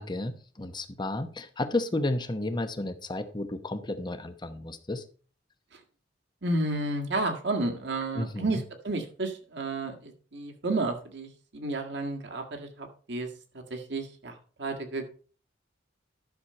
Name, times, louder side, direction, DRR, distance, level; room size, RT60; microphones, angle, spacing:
voice 1, 0.0-5.0 8.1-8.6, left 2 dB, 25° left, 9 dB, 0.9 m, -32 dB
voice 2, 6.4-13.3 13.7-14.3 14.6-15.1, right 2 dB, 65° right, 4 dB, 1.8 m, -31 dB
11.5 x 6.3 x 4.3 m, 0.41 s
head